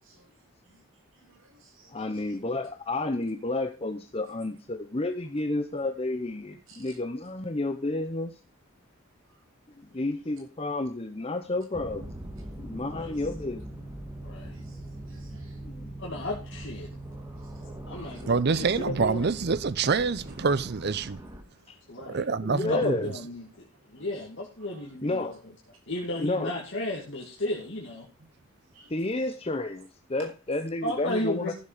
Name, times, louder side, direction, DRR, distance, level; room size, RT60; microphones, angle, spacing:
voice 1, 0.0-0.8 1.1-2.4 6.7-7.0 9.3-9.4 9.9-10.0 12.4-12.5 13.0-13.2 14.5-15.6 16.2-16.3 17.4-18.2 21.4-21.5 24.7-25.4 28.7-29.3 30.2-30.3, right 3 dB, 80° right, 6.0 m, -56 dB
voice 2, 1.9-8.3 9.8-12.1 12.6-13.8 15.6-15.9 21.7-21.8 22.5-23.1 25.0-25.4 26.2-26.5 28.9-31.5, left 2 dB, 30° left, 0.8 m, -31 dB
sound 1, 11.7-21.4, right 1 dB, 15° right, 2.0 m, -41 dB
voice 3, 14.2-14.5 16.0-16.9 17.9-18.4 18.8-19.2 21.9-22.2 22.7-23.7 23.9-25.3 25.9-28.1 30.8-31.5, left 1 dB, 60° left, 2.6 m, -33 dB
voice 4, 18.3-21.2 22.0-23.1, right 4 dB, 50° right, 0.6 m, -26 dB
15.0 x 7.4 x 5.1 m
head